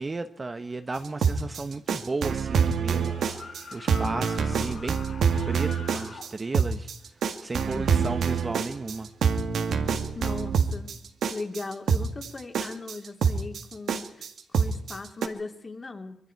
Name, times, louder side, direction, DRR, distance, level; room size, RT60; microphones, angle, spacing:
voice 1, 0.0-3.1 3.7-5.0 5.5-6.9 7.4-9.1, right 3 dB, 25° right, 0.8 m, -34 dB
sound 1, 1.0-15.3, right 6 dB, 75° right, 1.8 m, -26 dB
sound 2, 2.9-6.3, left 5 dB, 55° left, 2.9 m, -43 dB
voice 2, 7.7-8.2 10.1-10.9 11.3-16.2, left 3 dB, 30° left, 2.4 m, -38 dB
25.0 x 22.5 x 4.6 m
wide cardioid pair, 125°, 0 cm